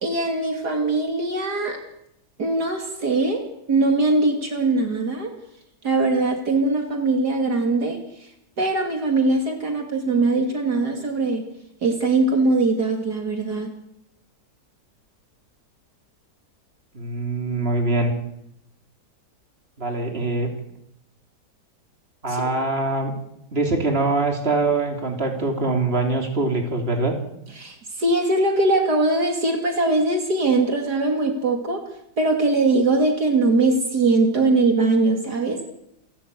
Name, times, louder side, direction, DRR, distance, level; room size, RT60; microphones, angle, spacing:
voice 1, 0.0-1.8 2.4-5.3 5.8-8.0 8.6-11.5 11.8-13.7 22.3-22.4 27.6-31.8 32.2-35.7, right 2 dB, 65° right, 3 dB, 3.1 m, -21 dB
voice 2, 16.9-18.1 19.8-20.5 22.2-23.1 23.5-27.1, right 3 dB, 35° right, 3 dB, 3.6 m, -23 dB
28.0 x 13.0 x 8.4 m, 0.79 s
omnidirectional pair, 1.8 m